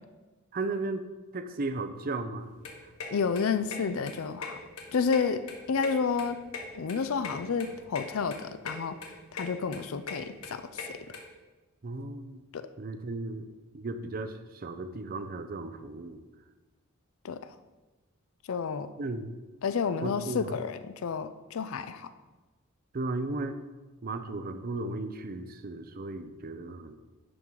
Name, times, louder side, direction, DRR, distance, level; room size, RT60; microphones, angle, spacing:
voice 1, 0.5-1.1 1.3-2.5 11.8-12.4 12.8-13.5 13.7-16.2 19.0-19.3 20.0-20.5 22.9-23.6 24.0-27.0, right 2 dB, 40° right, 9 dB, 0.5 m, -35 dB
sound 1, 2.4-11.2, left 4 dB, 85° left, 1.3 m, -41 dB
voice 2, 3.1-4.6 4.9-6.4 6.7-9.0 9.3-11.0 12.5-12.7 17.2-17.4 18.5-18.9 19.6-22.1, left 5 dB, 70° left, 11 dB, 0.4 m, -30 dB
11.0 x 3.8 x 4.6 m, 1.2 s
head